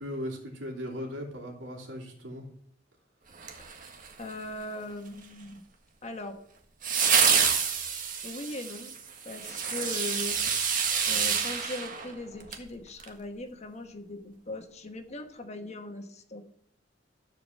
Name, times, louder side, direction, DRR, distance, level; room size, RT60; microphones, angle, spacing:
voice 1, 0.0-2.5, equal, 85° right, 1 dB, 3.1 m, -38 dB
sound 1, 3.4-4.3 6.8-12.7 13.0-13.1, right 6 dB, 45° right, 1.5 m, -27 dB
voice 2, 4.2-5.6 6.0-6.4 8.2-9.0 9.2-10.4 11.1-16.4, left 1 dB, 35° left, 6 dB, 1.2 m, -39 dB
13.5 x 5.0 x 7.4 m, 0.66 s
head